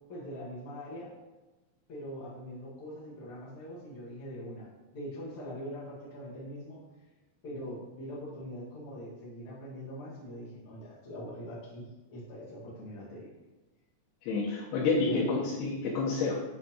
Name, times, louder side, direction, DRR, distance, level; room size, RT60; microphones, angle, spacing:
voice 1, 0.1-1.1 1.9-6.8 7.4-13.3 14.9-15.2, equal, 45° left, -7 dB, 2.2 m, -42 dB
voice 2, 14.2-16.3, left 4 dB, 90° left, -7 dB, 3.0 m, -29 dB
8.0 x 3.5 x 4.3 m, 1.1 s
omnidirectional pair, 4.5 m